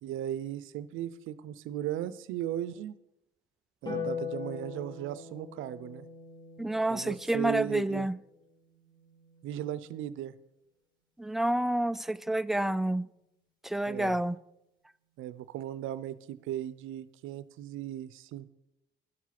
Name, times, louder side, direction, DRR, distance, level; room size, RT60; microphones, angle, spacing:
voice 1, 0.0-3.0 3.8-6.0 6.9-8.1 9.4-10.3 13.9-14.2 15.2-18.5, right 12 dB, 90° right, 0.6 m, -37 dB
Harp, 3.8-10.4 12.0-13.0, left 6 dB, 20° left, 4.1 m, -43 dB
voice 2, 6.6-8.2 11.2-13.1 13.6-14.4, right 1 dB, ahead, 0.3 m, -29 dB
11.0 x 7.3 x 5.8 m
cardioid pair, 90°, 20 cm